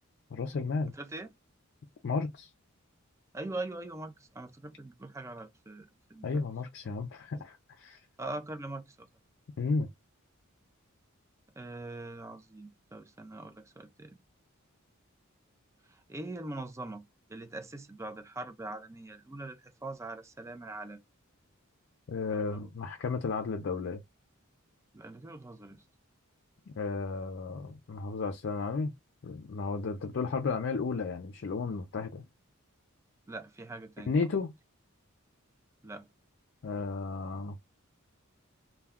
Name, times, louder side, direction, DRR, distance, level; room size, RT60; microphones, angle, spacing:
voice 1, 0.3-0.9 2.0-2.5 6.2-8.0 9.6-9.9 22.1-24.0 26.7-28.9 29.2-32.2 34.1-34.5 36.6-37.6, left 4 dB, 55° left, 0.4 m, -33 dB
voice 2, 0.9-1.3 3.3-6.5 7.3-7.4 8.2-9.1 11.6-14.2 15.8-17.0 17.3-21.0 22.3-22.7 24.9-25.9 33.3-34.1 35.8-36.1, right 2 dB, 15° right, 0.4 m, -42 dB
2.2 x 2.2 x 3.5 m
head